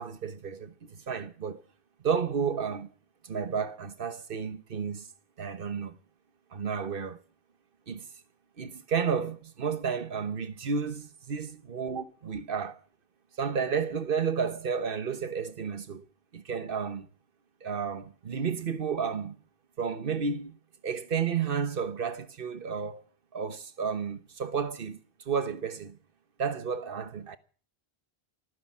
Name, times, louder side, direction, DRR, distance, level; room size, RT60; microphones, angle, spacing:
voice 1, 0.0-1.6 2.0-2.9 3.2-5.1 5.4-6.0 6.5-7.2 7.9-8.1 8.6-11.0 11.3-12.8 13.4-16.0 16.3-17.1 17.6-19.4 19.8-20.6 20.8-23.0 23.3-25.0 25.3-26.0 26.4-27.4, right 6 dB, 60° right, 1.3 m, -32 dB
24.0 x 9.9 x 6.1 m
omnidirectional pair, 1.0 m